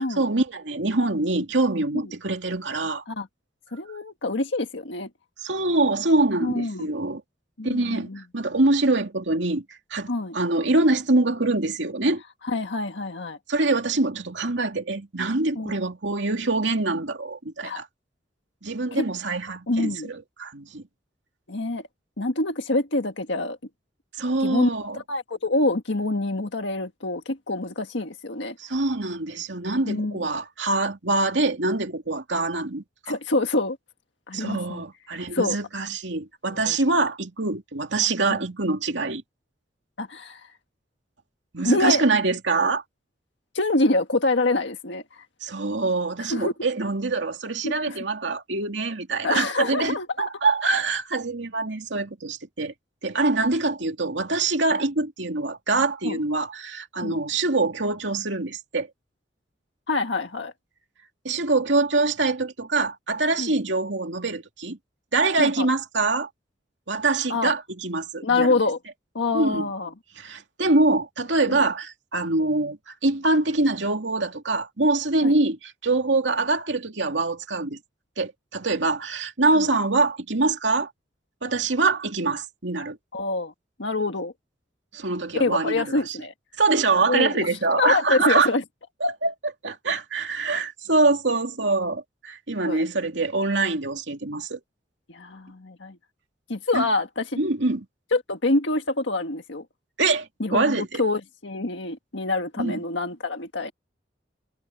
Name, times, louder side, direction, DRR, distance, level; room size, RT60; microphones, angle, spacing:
voice 1, 0.0-3.0 5.4-7.2 7.6-10.1 10.3-12.2 13.5-17.9 18.6-20.8 24.2-25.0 28.6-33.2 34.3-39.2 41.5-42.8 45.4-52.7 53.0-58.9 61.2-64.8 65.1-66.3 66.9-68.5 69.3-69.6 70.2-77.8 78.2-80.9 81.4-83.0 84.9-86.2 86.6-88.5 89.0-94.6 96.7-96.9 97.4-97.9 100.0-101.0 102.6-102.8, right 3 dB, 75° right, 2.6 m, -24 dB
voice 2, 3.7-5.1 6.4-6.9 7.6-8.2 10.1-10.3 12.4-13.4 15.5-15.7 17.6-17.8 18.9-19.0 19.7-20.1 21.5-21.8 22.2-23.6 24.4-28.6 29.8-30.2 33.1-33.8 34.3-34.8 35.3-35.6 36.5-36.8 40.0-40.5 41.6-42.0 43.5-45.2 46.2-46.5 47.6-48.0 49.2-50.3 56.0-56.2 57.0-57.2 59.9-60.5 63.4-63.5 65.4-65.7 67.3-67.5 68.2-68.8 69.1-69.9 71.5-71.6 75.2-75.4 79.6-79.7 83.1-83.5 83.8-84.3 85.4-86.3 87.1-87.5 87.8-88.6 92.6-92.8 95.1-96.0 96.5-97.3 98.1-99.6 100.4-103.7, left 2 dB, 85° left, 1.7 m, -26 dB
head